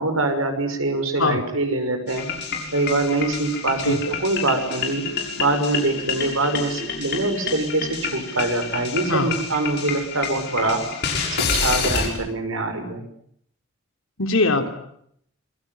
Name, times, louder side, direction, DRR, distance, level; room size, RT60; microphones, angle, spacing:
voice 1, 0.0-2.2 2.7-5.0 5.4-10.8 11.3-13.0, right 2 dB, 75° right, 7 dB, 6.2 m, -24 dB
sound 1, 2.1-12.1, left 5 dB, 50° left, 6.5 m, -28 dB
voice 2, 14.2-14.7, left 3 dB, 70° left, 6 dB, 3.5 m, -21 dB
27.5 x 21.5 x 9.5 m, 0.72 s
head